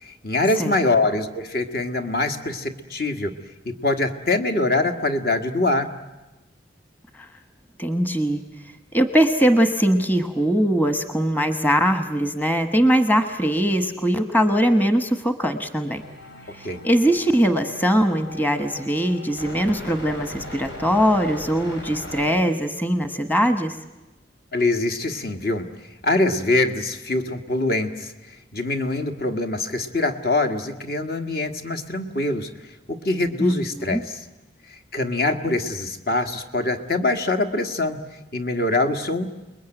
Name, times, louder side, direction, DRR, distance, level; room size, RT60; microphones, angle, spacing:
voice 1, 0.0-3.3 3.7-5.9 16.6-16.8 24.5-25.7 26.0-28.1 28.5-32.5 32.9-34.2 34.9-38.0 38.3-39.3, left 2 dB, 55° left, 6 dB, 1.8 m, -24 dB
voice 2, 7.8-8.4 8.9-16.0 16.5-23.8 33.4-33.6 33.9-34.0, equal, 10° left, 7 dB, 1.1 m, -21 dB
sound 1, 15.9-22.3, left 1 dB, 80° left, 5.8 m, -39 dB
29.5 x 21.0 x 9.1 m, 1.1 s
head